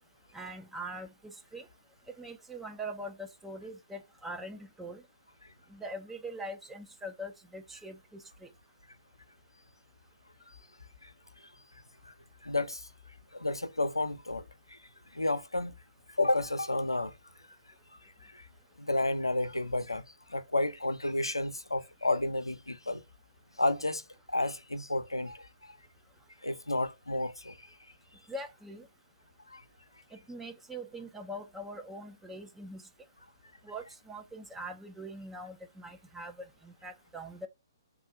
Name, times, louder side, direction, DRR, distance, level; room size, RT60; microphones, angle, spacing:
voice 1, 0.3-1.7 2.2-5.0 5.7-8.5 28.3-28.9 30.3-32.8 33.6-37.5, right 1 dB, 5° right, 0.5 m, -42 dB
voice 2, 12.4-12.9 13.3-14.4 14.7-14.8 15.1-15.7 16.2-17.1 18.2-18.4 18.8-20.0 20.3-23.0 23.6-24.0 24.3-25.8 26.4-27.6 29.5-29.6, left 2 dB, 85° left, 0.6 m, -31 dB
3.7 x 2.4 x 4.3 m
figure-of-eight pair, 130°, 2 cm